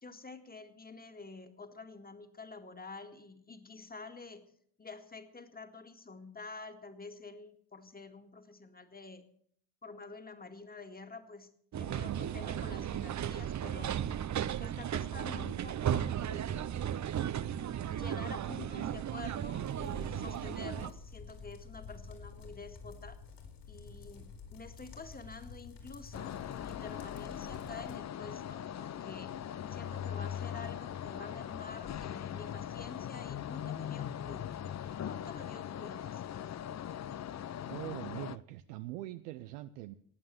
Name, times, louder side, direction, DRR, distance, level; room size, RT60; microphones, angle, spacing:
voice 1, 0.0-4.4 4.8-9.2 9.8-14.0 14.6-16.7 17.9-23.2 23.7-29.3 29.7-34.5 35.0-36.3, left 3 dB, 20° left, 7 dB, 2.1 m, -48 dB
sound 1, 11.7-20.9, right 10 dB, 40° right, 0.7 m, -35 dB
sound 2, 19.6-27.9, left 4 dB, 65° left, 5.0 m, -50 dB
sound 3, 26.1-38.4, left 10 dB, 35° left, 0.6 m, -40 dB
voice 2, 37.7-40.0, right 15 dB, 90° right, 10 dB, 0.7 m, -42 dB
16.0 x 9.1 x 7.7 m, 0.63 s
supercardioid pair, 65°, 46 cm